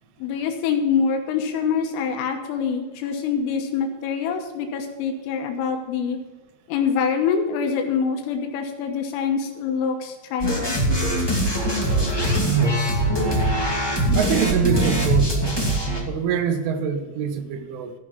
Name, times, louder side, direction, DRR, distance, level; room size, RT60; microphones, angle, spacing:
voice 1, 0.2-6.2 6.7-10.8, left 6 dB, 90° left, 4 dB, 3.8 m, -25 dB
sound 1, 10.4-16.0, right 1 dB, 30° left, 0.4 m, -22 dB
voice 2, 14.1-15.4 16.1-17.9, right 7 dB, 80° right, 7 dB, 3.6 m, -24 dB
14.0 x 6.2 x 7.2 m, 1.2 s
omnidirectional pair, 5.7 m